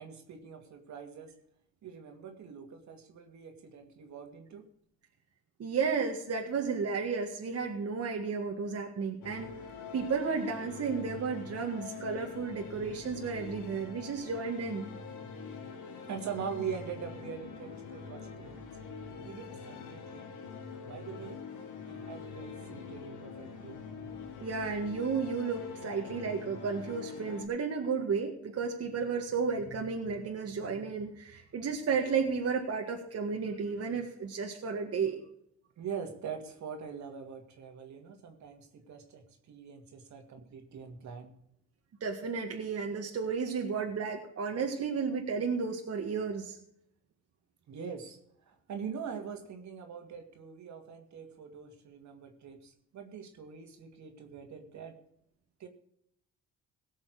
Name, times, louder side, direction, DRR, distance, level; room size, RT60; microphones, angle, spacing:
voice 1, 0.0-1.3 1.8-4.7 16.1-18.7 19.2-20.3 20.9-21.4 21.8-23.8 35.8-41.3 47.7-48.2 48.5-55.0 55.6-55.7, right 6 dB, 70° right, 5 dB, 2.3 m, -43 dB
voice 2, 5.6-9.5 9.9-14.9 24.4-35.2 42.0-46.6, right 5 dB, 50° right, 2 dB, 1.8 m, -33 dB
sound 1, 9.2-27.5, left 5 dB, 80° left, 2.1 m, -44 dB
17.0 x 6.4 x 6.4 m, 0.70 s
cardioid pair, 90°, 30 cm